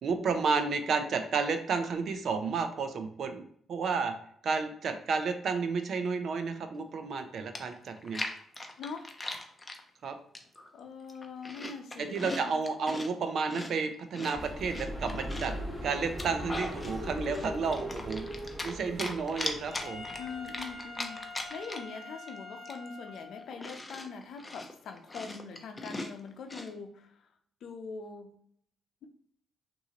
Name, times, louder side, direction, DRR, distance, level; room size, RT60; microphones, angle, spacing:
voice 1, 0.0-4.1 4.4-8.2 10.0-10.1 12.0-15.5 15.8-18.3 18.6-20.0, right 5 dB, 60° right, 7 dB, 0.6 m, -31 dB
Chewing mastication, 7.2-7.3 7.6-9.8 10.3-10.7 11.0-13.1 13.5-15.6 16.0-17.0 17.3-18.7 19.0-22.0 22.3-22.4 22.7-26.7, left 2 dB, 20° left, 0.6 m, -39 dB
voice 2, 8.8-9.1 10.7-12.5 20.2-21.2 21.5-27.3 27.6-28.4, left 5 dB, 70° left, 5 dB, 0.6 m, -43 dB
sound 1, 14.3-20.9, equal, ahead, 1.1 m, -40 dB
Wind instrument woodwind instrument, 19.7-23.6, left 3 dB, 35° right, 1.6 m, -45 dB
5.6 x 2.7 x 2.9 m, 0.65 s
cardioid pair, 90°, 0 cm